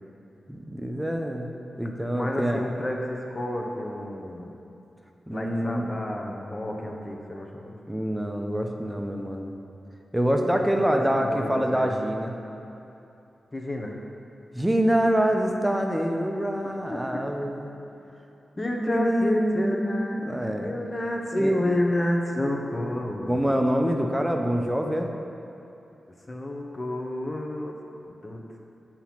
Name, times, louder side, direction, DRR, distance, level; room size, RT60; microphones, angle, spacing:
voice 1, 0.5-2.6 5.3-5.9 7.9-9.5 10.1-12.4 14.5-17.7 18.8-20.7 21.4-21.5 23.3-25.1, equal, 10° right, 3 dB, 0.6 m, -26 dB
voice 2, 2.1-4.6 5.3-7.7 10.5-11.9 13.5-14.0 16.6-17.2 18.6-20.2 20.6-23.6 26.3-27.8 28.0-28.4, left 1 dB, 30° left, 0 dB, 0.8 m, -30 dB
7.0 x 2.9 x 5.8 m, 2.8 s
cardioid pair, 50°, 0 cm